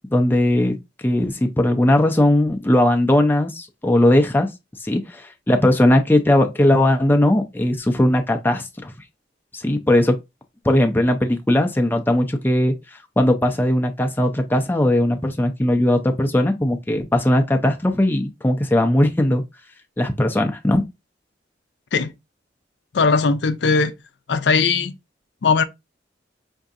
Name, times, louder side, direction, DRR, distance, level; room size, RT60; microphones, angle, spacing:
voice 1, 0.1-0.8 1.0-4.5 4.8-8.9 9.5-10.2 10.6-12.7 13.2-19.4 20.0-20.8, left 1 dB, 10° left, 0.4 m, -18 dB
voice 2, 22.9-23.9 24.3-24.9 25.4-25.6, left 4 dB, 65° left, 0.5 m, -18 dB
5.6 x 2.6 x 2.4 m
head